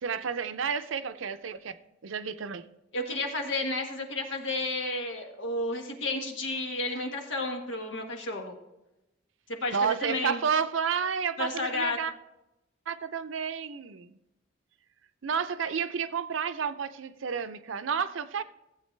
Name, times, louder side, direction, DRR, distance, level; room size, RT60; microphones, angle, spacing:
voice 1, 0.0-1.8 2.0-2.6 9.7-12.1 12.9-14.2 15.2-18.4, right 6 dB, 90° right, 0.6 m, -31 dB
voice 2, 2.9-8.6 9.5-10.4 11.4-12.0, left 2 dB, 75° left, 1.6 m, -32 dB
15.0 x 8.2 x 3.3 m
head